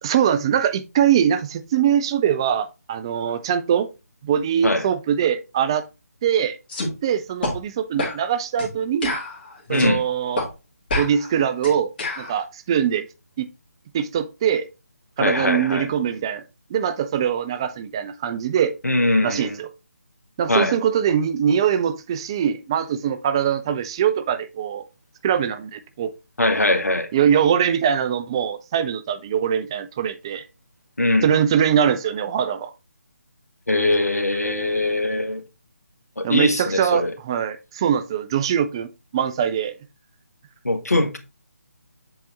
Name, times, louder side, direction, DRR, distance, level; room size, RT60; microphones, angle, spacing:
voice 1, 0.0-3.9 4.2-5.9 6.2-6.6 7.0-9.2 9.7-10.4 11.0-11.9 12.2-13.1 13.4-13.5 13.9-14.7 15.2-16.4 16.7-18.7 19.2-19.7 20.4-24.8 25.2-26.1 27.1-30.4 31.2-32.7 36.2-38.9 39.1-39.7, right 8 dB, 20° right, 0.4 m, -22 dB
sound 1, 6.7-6.9 7.4-7.6 8.0-8.2 8.6-8.7 9.0-10.0 10.4-10.5 10.9-12.3, left 2 dB, 35° left, 2.0 m, -27 dB
voice 2, 9.7-10.0 15.2-15.9 18.8-19.6 20.5-20.7 26.4-27.1 31.0-31.3 33.7-35.4 36.2-37.1 40.6-41.2, left 2 dB, 75° left, 1.2 m, -21 dB
7.7 x 3.4 x 4.0 m
figure-of-eight pair, 150°, 8 cm